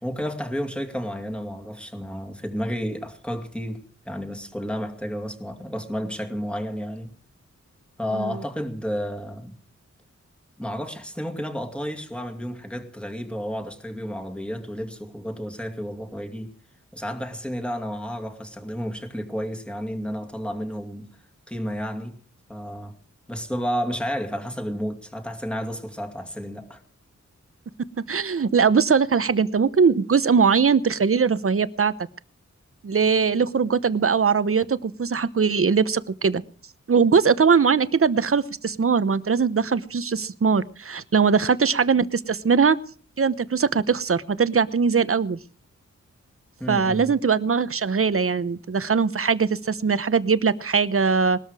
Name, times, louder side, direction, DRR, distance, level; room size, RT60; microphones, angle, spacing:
voice 1, 0.0-7.1 8.0-9.5 10.6-16.5 16.9-21.2 21.5-22.2 22.5-23.0 23.3-26.8 46.6-47.1, equal, 5° left, 2.4 m, -31 dB
voice 2, 28.1-31.9 32.8-36.4 36.9-42.8 43.2-45.4 46.7-51.4, right 5 dB, 50° right, 0.9 m, -21 dB
20.0 x 13.0 x 4.9 m
wide cardioid pair, 90°, 29 cm